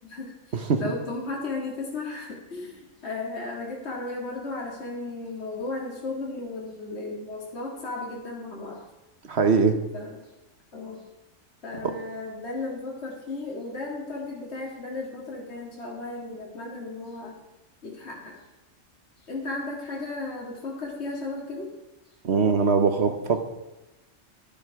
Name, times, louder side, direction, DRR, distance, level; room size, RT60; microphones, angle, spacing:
voice 1, 0.0-8.9 9.9-10.3 10.7-11.0 11.6-17.4 17.8-18.4 19.2-21.7, left 3 dB, 55° left, -2 dB, 2.3 m, -35 dB
voice 2, 9.3-9.8 11.8-11.9 22.2-23.4, right 5 dB, 55° right, 7 dB, 1.3 m, -22 dB
11.0 x 11.0 x 4.8 m, 1.0 s
omnidirectional pair, 1.3 m